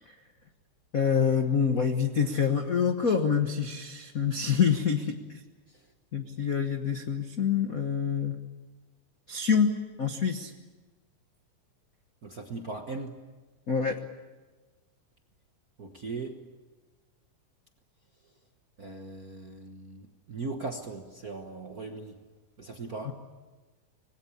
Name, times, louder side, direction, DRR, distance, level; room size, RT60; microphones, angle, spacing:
voice 1, 0.9-5.2 6.1-8.4 9.3-10.5 13.7-14.0, left 6 dB, 80° left, 6 dB, 0.7 m, -26 dB
voice 2, 12.2-13.2 15.8-16.4 18.8-22.2 22.6-23.1, right 3 dB, 55° right, 4 dB, 1.0 m, -39 dB
26.0 x 20.5 x 8.4 m, 1.3 s
omnidirectional pair, 3.6 m